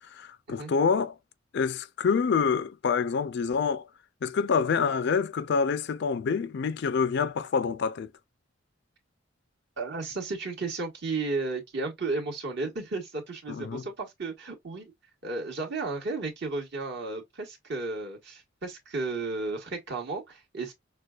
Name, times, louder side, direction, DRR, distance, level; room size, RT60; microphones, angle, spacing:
voice 1, 0.1-1.2 1.5-3.9 4.2-8.1 13.5-13.8, left 5 dB, 55° left, 0.4 m, -27 dB
voice 2, 9.8-14.9 15.2-20.7, right 3 dB, 60° right, 1.6 m, -33 dB
6.5 x 2.2 x 2.4 m
head